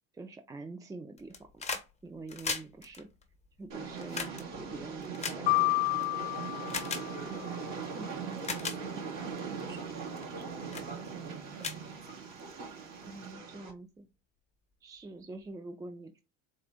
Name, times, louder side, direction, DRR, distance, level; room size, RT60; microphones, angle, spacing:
voice 1, 0.1-1.4 2.0-3.1 3.6-5.5 13.0-14.1 14.8-16.2, right 3 dB, 10° right, 0.3 m, -45 dB
sound 1, 1.2-1.9 2.2-6.0 6.7-7.0 7.8-7.9 8.3-8.8 9.4-9.6 10.2-10.4 10.7-10.9 11.3-11.4 11.6-12.5 13.7-13.8, left 4 dB, 15° left, 0.9 m, -38 dB
Train, 3.7-13.7, right 5 dB, 50° right, 2.3 m, -40 dB
sound 2, 5.5-7.6, left 25 dB, 60° left, 0.5 m, -30 dB
voice 2, 7.9-12.0, right 6 dB, 25° right, 1.0 m, -48 dB
4.2 x 2.5 x 3.4 m
hypercardioid pair, 80°, 40 cm